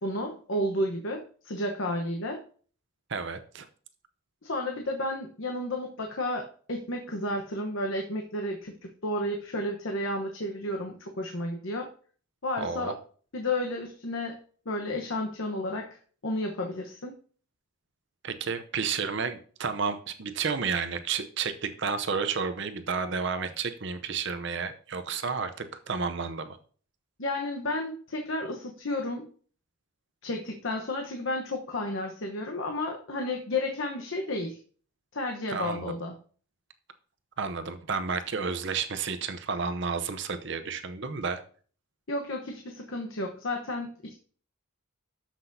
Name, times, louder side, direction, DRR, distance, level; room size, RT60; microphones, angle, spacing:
voice 1, 0.0-2.4 4.4-11.9 12.4-12.9 13.3-14.4 14.7-17.1 27.2-29.3 30.2-34.6 35.1-36.1 42.1-44.1, left 1 dB, 65° left, 2 dB, 1.0 m, -32 dB
voice 2, 3.1-3.7 12.6-12.9 18.2-26.6 35.5-35.9 37.4-41.4, right 5 dB, 55° right, 9 dB, 0.7 m, -31 dB
13.5 x 5.9 x 2.7 m, 0.43 s
head